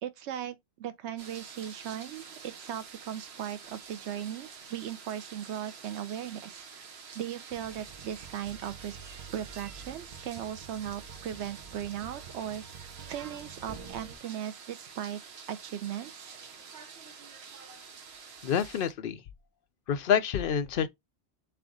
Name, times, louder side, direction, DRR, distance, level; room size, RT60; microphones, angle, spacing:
voice 1, 0.0-6.8 7.1-9.0 9.3-15.2 15.5-16.4, right 10 dB, 85° right, 0.9 m, -38 dB
sound 1, 1.2-18.9, right 6 dB, 70° right, 1.1 m, -48 dB
sound 2, 7.5-14.2, right 6 dB, 40° right, 0.8 m, -49 dB
voice 2, 18.4-19.2 19.9-20.9, left 8 dB, 60° left, 0.8 m, -27 dB
3.5 x 3.4 x 3.8 m
omnidirectional pair, 1.1 m